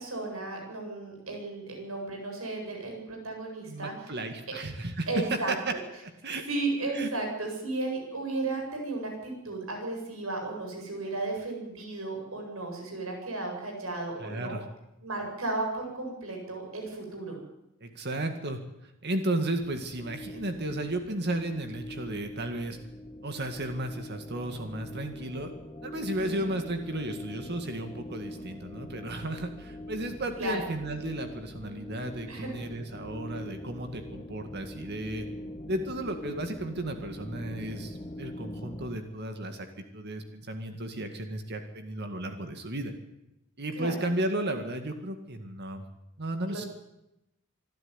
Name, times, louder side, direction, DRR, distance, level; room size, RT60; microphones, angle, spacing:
voice 1, 0.0-3.9 5.1-5.5 6.5-14.6 15.0-17.4 26.2-26.5 30.4-30.6 32.3-32.5 43.7-44.1 46.5-46.7, right 2 dB, 75° right, 1 dB, 7.9 m, -34 dB
voice 2, 3.7-5.7 6.2-6.4 6.9-7.1 14.2-14.7 17.8-18.6 19.0-22.8 23.2-25.5 25.8-35.3 35.7-42.9 43.6-45.8 46.2-46.6, right 1 dB, 50° right, 7 dB, 2.0 m, -34 dB
sound 1, 19.5-38.9, left 1 dB, 20° left, 1.8 m, -43 dB
25.5 x 12.5 x 9.8 m, 0.88 s
head